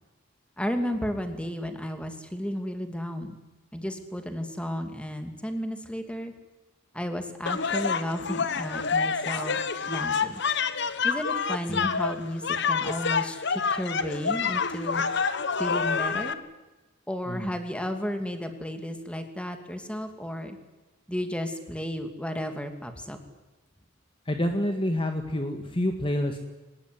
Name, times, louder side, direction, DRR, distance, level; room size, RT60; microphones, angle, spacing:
voice 1, 0.6-3.3 3.7-6.3 6.9-9.6 9.9-10.4 11.0-15.0 15.6-16.4 17.1-20.6 21.1-23.2, equal, 5° left, 6 dB, 2.6 m, -33 dB
sound 1, 7.5-16.3, left 5 dB, 60° left, 1.3 m, -27 dB
voice 2, 24.3-26.4, left 1 dB, 25° left, 5 dB, 1.8 m, -28 dB
23.0 x 20.0 x 9.4 m, 1.1 s
head